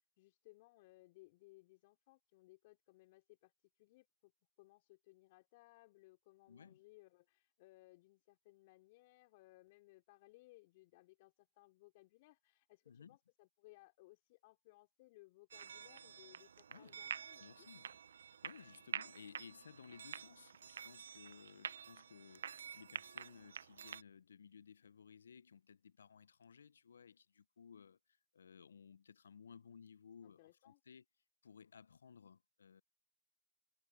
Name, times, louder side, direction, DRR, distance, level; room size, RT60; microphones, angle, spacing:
voice 1, 0.2-3.5 3.8-4.3 4.6-17.7 30.2-30.8, left 21 dB, 50° left, 3.9 m, -64 dB
voice 2, 6.5-6.8 12.9-13.2 16.7-17.0 17.4-18.0 18.4-28.0 28.3-31.0 31.4-32.8, left 6 dB, 75° left, 1.0 m, -59 dB
sound 1, 15.5-24.0, right 7 dB, 75° right, 0.9 m, -49 dB
hypercardioid pair, 115°, 0 cm